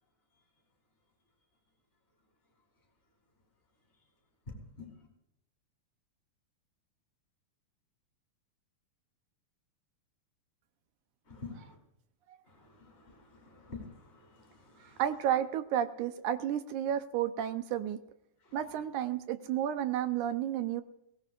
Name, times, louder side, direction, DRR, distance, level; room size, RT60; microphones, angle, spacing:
voice 1, 11.3-11.8 12.5-15.0 18.4-18.6, left 4 dB, 20° left, 0 dB, 3.8 m, -49 dB
voice 2, 14.8-18.0 18.5-20.8, right 10 dB, 80° right, 10 dB, 2.3 m, -32 dB
22.5 x 17.5 x 2.5 m, 0.85 s
omnidirectional pair, 3.4 m